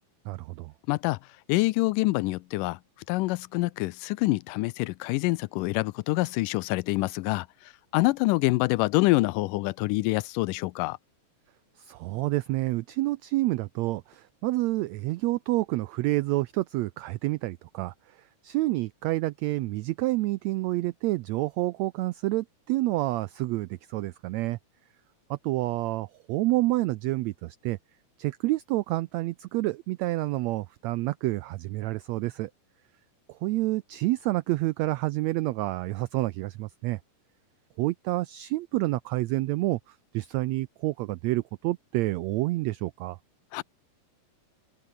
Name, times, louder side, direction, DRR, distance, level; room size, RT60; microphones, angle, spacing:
voice 1, 0.2-0.7 11.8-17.9 18.4-24.6 25.3-27.8 28.2-32.5 33.3-37.0 37.8-43.2, right 18 dB, 90° right, 1.5 m, -28 dB
voice 2, 0.9-1.2 1.5-2.8 3.1-7.5 7.9-11.0 43.5-43.6, left 21 dB, 85° left, 2.2 m, -26 dB
open air
omnidirectional pair, 3.7 m